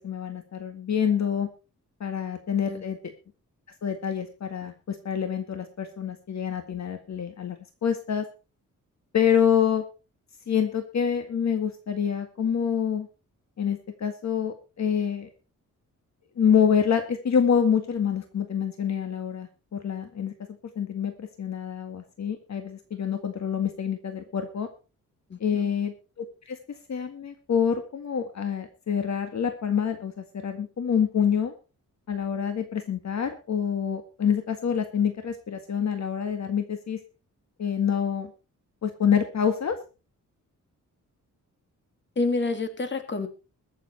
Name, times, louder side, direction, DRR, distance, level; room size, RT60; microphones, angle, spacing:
voice 1, 0.0-1.5 2.0-3.0 3.8-7.6 7.8-8.2 9.1-9.8 10.5-13.1 13.6-15.3 16.4-20.3 20.8-24.7 25.4-26.6 26.9-31.5 32.1-37.0 37.6-38.3 38.8-39.8, left 7 dB, 55° left, 7 dB, 1.8 m, -26 dB
voice 2, 25.3-25.7 42.2-43.3, left 3 dB, 35° left, 8 dB, 2.2 m, -28 dB
22.0 x 7.3 x 4.3 m, 0.32 s
wide cardioid pair, 140°, 32 cm